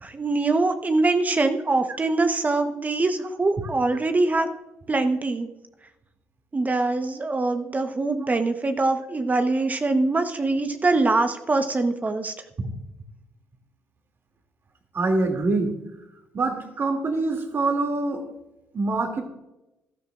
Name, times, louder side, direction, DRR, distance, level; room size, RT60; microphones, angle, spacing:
voice 1, 0.0-4.5 4.9-5.5 6.5-12.3, right 3 dB, 30° right, 7 dB, 1.1 m, -23 dB
voice 2, 14.9-15.7 16.3-18.2 18.7-19.2, right 3 dB, 45° right, 3 dB, 2.5 m, -24 dB
16.0 x 12.0 x 2.5 m, 0.95 s
hypercardioid pair, 55°, 5 cm